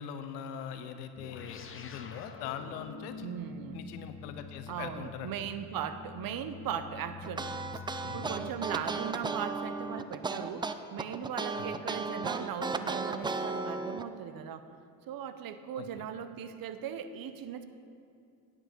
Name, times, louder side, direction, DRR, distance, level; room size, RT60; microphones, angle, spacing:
voice 1, 0.0-3.4 3.7-5.3 8.0-8.4 11.5-11.8 15.8-16.0, left 8 dB, 85° left, 9 dB, 0.9 m, -42 dB
sound 1, 1.2-10.0, left 5 dB, 25° left, 0.9 m, -47 dB
voice 2, 3.2-3.8 4.7-14.7 15.1-17.7, right 8 dB, 50° right, 11 dB, 0.8 m, -39 dB
sound 2, 7.2-14.0, right 4 dB, 10° right, 0.3 m, -35 dB
10.0 x 8.9 x 5.3 m, 2.4 s
hypercardioid pair, 70°, 46 cm